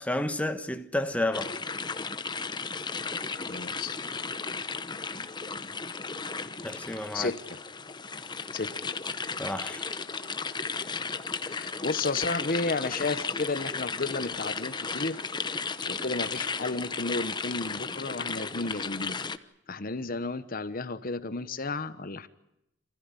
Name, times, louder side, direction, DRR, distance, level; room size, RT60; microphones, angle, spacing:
voice 1, 0.0-1.5 6.6-7.3 9.4-9.9, left 1 dB, 5° left, 1.3 m, -31 dB
sound 1, 1.3-19.4, left 4 dB, 25° left, 1.0 m, -35 dB
voice 2, 3.3-4.0 7.1-7.6 8.5-8.7 11.5-15.2 15.9-19.2 19.7-22.3, left 3 dB, 50° left, 1.1 m, -32 dB
28.5 x 15.0 x 9.8 m
head